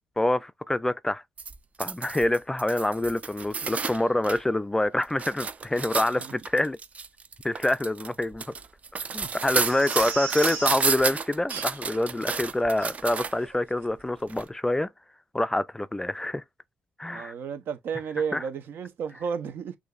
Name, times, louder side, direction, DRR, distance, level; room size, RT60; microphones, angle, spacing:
voice 1, 0.2-1.2 1.8-6.8 7.4-8.4 9.1-14.9 15.3-16.4 17.0-17.3 18.3-18.4, left 1 dB, 10° left, 0.3 m, -26 dB
sound 1, 1.4-4.4 4.8-13.5 14.3-14.4, right 5 dB, 40° right, 0.5 m, -31 dB
Crying sobbing, 9.4-10.9 11.5-12.0 12.3-12.4 12.8-12.9 13.4-13.6 13.8-13.9, right 6 dB, 85° right, 1.7 m, -37 dB
voice 2, 17.1-19.8, right 6 dB, 70° right, 0.9 m, -32 dB
6.4 x 2.6 x 2.4 m
cardioid pair, 90°, 4 cm